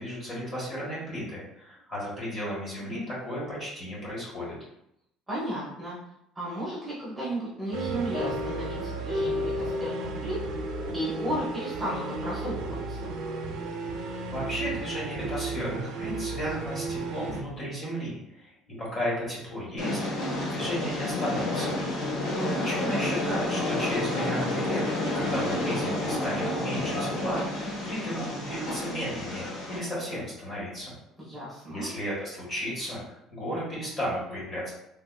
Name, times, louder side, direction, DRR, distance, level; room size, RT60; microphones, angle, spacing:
voice 1, 0.0-4.5 14.3-18.5 18.8-21.8 22.6-24.9 25.1-30.9 31.7-33.0 33.3-34.7, equal, 25° left, -6 dB, 1.4 m, -34 dB
voice 2, 5.3-6.0 6.3-10.4 10.9-13.0 22.3-22.7 31.2-31.9, equal, 5° right, -10 dB, 0.9 m, -34 dB
sound 1, 7.7-15.8, left 2 dB, 80° left, 1.1 m, -37 dB
sound 2, 7.7-17.4, right 4 dB, 70° right, 0.5 m, -35 dB
Train, 19.8-29.8, left 1 dB, 60° left, 1.2 m, -30 dB
3.7 x 2.7 x 2.2 m, 0.80 s
cardioid pair, 155°, 0 cm